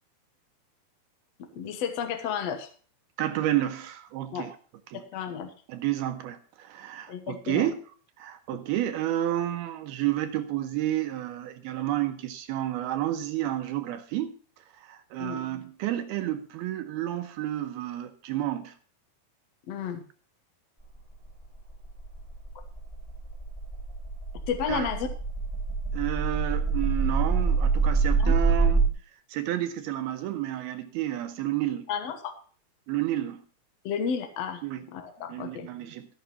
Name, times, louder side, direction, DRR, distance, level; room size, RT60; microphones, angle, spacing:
voice 1, 1.4-2.7 4.3-4.5 4.9-5.5 7.1-7.7 15.2-15.4 19.7-20.0 24.5-25.1 28.2-28.3 31.9-32.3 33.8-34.6 34.9-35.7, left 7 dB, 75° left, 7 dB, 1.5 m, -32 dB
voice 2, 3.2-4.5 4.9-5.0 5.7-7.8 8.2-14.3 14.8-18.7 24.7-24.9 25.9-28.8 29.3-31.9 32.9-33.4 34.6-34.9 35.3-36.1, right 13 dB, 80° right, 8 dB, 2.5 m, -30 dB
sound 1, 20.8-28.9, right 4 dB, 10° left, 1.6 m, -26 dB
14.5 x 6.0 x 5.6 m, 0.42 s
omnidirectional pair, 4.9 m